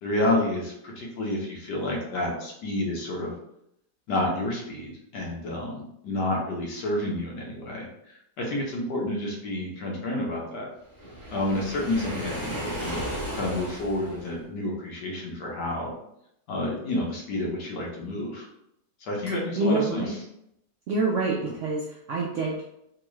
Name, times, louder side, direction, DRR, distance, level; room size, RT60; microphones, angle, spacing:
voice 1, 0.0-3.3 4.1-7.9 8.4-10.7 11.3-15.9 16.5-18.5 19.0-20.0, left 1 dB, 80° left, -2 dB, 1.5 m, -29 dB
Waves surf, 10.9-14.4, equal, 35° right, 1.0 m, -34 dB
voice 2, 19.6-20.2 20.9-22.6, right 3 dB, 75° right, -3 dB, 0.7 m, -26 dB
3.7 x 2.3 x 3.0 m, 0.79 s
omnidirectional pair, 1.8 m